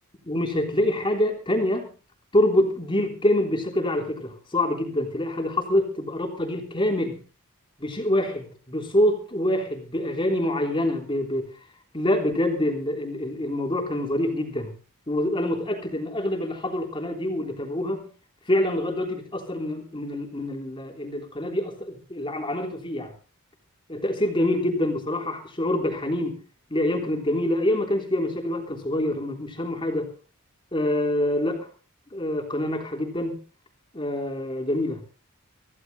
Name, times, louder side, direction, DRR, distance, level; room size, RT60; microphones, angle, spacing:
voice 1, 0.2-1.9 2.3-7.2 7.8-11.5 11.9-14.7 15.1-18.1 18.5-23.1 23.9-26.4 26.7-30.1 30.7-31.7 32.1-33.4 33.9-35.0, left 1 dB, 25° left, 2 dB, 3.4 m, -26 dB
25.0 x 15.5 x 2.7 m, 0.35 s
head